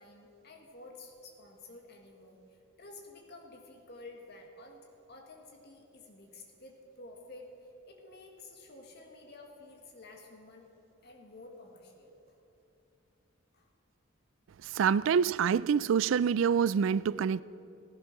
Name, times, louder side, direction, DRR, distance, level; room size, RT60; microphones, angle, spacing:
voice 1, 0.0-10.7 11.0-12.4 13.5-13.7 15.0-15.1, left 2 dB, 55° left, 1.8 m, -51 dB
voice 2, 14.7-17.4, right 7 dB, 70° right, 0.3 m, -26 dB
16.5 x 11.5 x 6.0 m
head